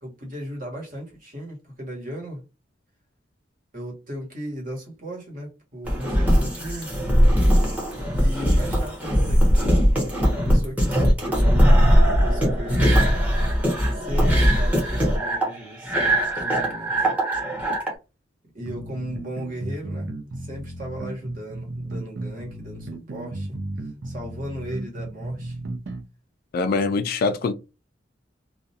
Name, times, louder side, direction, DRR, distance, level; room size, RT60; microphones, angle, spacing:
voice 1, 0.0-2.4 3.7-6.9 8.1-9.8 10.3-11.0 11.2-13.2 13.9-17.1 18.5-23.6 24.0-25.6, equal, 50° right, 1.2 m, -36 dB
sound 1, 5.8-17.9, equal, 10° right, 0.8 m, -20 dB
sound 2, 18.6-26.0, right 2 dB, 85° right, 0.6 m, -34 dB
voice 2, 26.5-27.5, left 4 dB, 55° left, 0.3 m, -23 dB
2.4 x 2.2 x 2.7 m
head